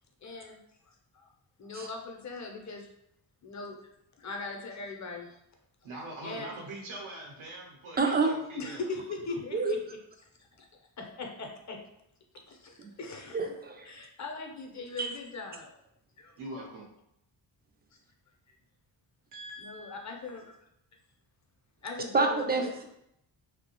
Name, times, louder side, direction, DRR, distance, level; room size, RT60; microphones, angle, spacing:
voice 1, 0.2-0.6 1.1-1.3 1.6-2.9 3.4-3.8 4.2-5.4 6.2-6.5 8.6-10.0 10.6-10.7 11.0-11.8 12.5-13.5 13.8-15.7 16.2-16.3 16.6-16.7 19.6-20.5 21.8-22.7, left 3 dB, 35° left, 2 dB, 0.6 m, -40 dB
voice 2, 5.8-8.9 16.4-16.9 19.3-20.5, right 2 dB, 80° right, -1 dB, 0.9 m, -43 dB
voice 3, 8.0-8.3 9.5-9.8 13.3-13.9 15.0-15.1 22.1-22.8, right 3 dB, 20° right, 3 dB, 0.4 m, -27 dB
2.3 x 2.1 x 2.9 m, 0.78 s
cardioid pair, 50°, 48 cm